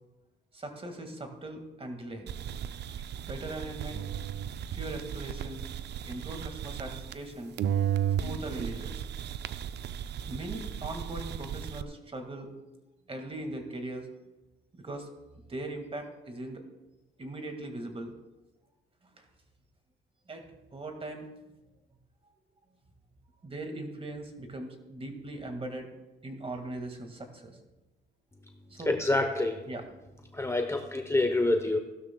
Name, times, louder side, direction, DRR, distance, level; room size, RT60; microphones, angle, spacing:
voice 1, 0.5-2.3 3.2-4.0 4.7-5.6 6.0-7.5 8.2-9.0 10.3-12.6 13.1-14.1 14.7-15.1 15.5-16.7 17.2-18.1 19.0-19.2 20.3-21.6 23.4-25.9 26.2-27.6 28.7-29.0 29.7-29.9, right 2 dB, 30° right, 5 dB, 1.9 m, -40 dB
sound 1, 2.3-7.3 7.6-11.8, right 9 dB, 60° right, 0.5 m, -35 dB
voice 2, 28.9-29.6 30.3-31.8, left 2 dB, 15° left, 5 dB, 0.9 m, -27 dB
15.5 x 12.0 x 2.3 m, 1.0 s
cardioid pair, 90°, 20 cm